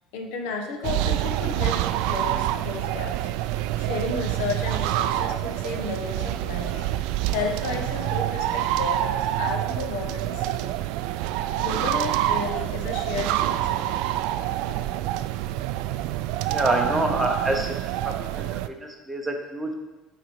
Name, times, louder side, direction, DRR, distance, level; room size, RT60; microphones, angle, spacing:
voice 1, 0.1-3.3 3.8-10.7 11.6-14.1, left 4 dB, 75° left, 3 dB, 1.3 m, -33 dB
sound 1, 0.8-18.7, right 13 dB, 70° right, 0.3 m, -27 dB
voice 2, 16.5-17.9 18.3-19.7, right 1 dB, 5° right, 2 dB, 0.8 m, -27 dB
9.0 x 4.0 x 4.7 m, 1.1 s
cardioid pair, 165°, 0 cm